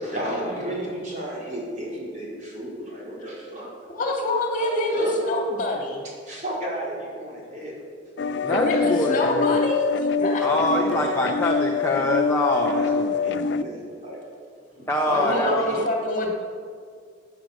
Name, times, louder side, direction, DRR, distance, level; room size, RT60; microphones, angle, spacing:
voice 1, 0.0-3.7 4.6-5.3 6.3-7.8 8.2-8.5 10.5-11.2 12.7-12.9 13.2-14.2 14.8-15.9, right 1 dB, 40° right, -5 dB, 4.4 m, -32 dB
voice 2, 3.9-6.1 8.5-9.8 10.2-11.1 15.1-16.3, left 1 dB, 40° left, 0 dB, 2.4 m, -26 dB
sound 1, 8.2-13.6, left 5 dB, 60° left, 0.4 m, -24 dB
voice 3, 8.4-9.6 10.4-13.6 14.9-15.8, left 1 dB, 15° left, 0 dB, 1.0 m, -25 dB
12.5 x 9.2 x 7.9 m, 2.1 s
head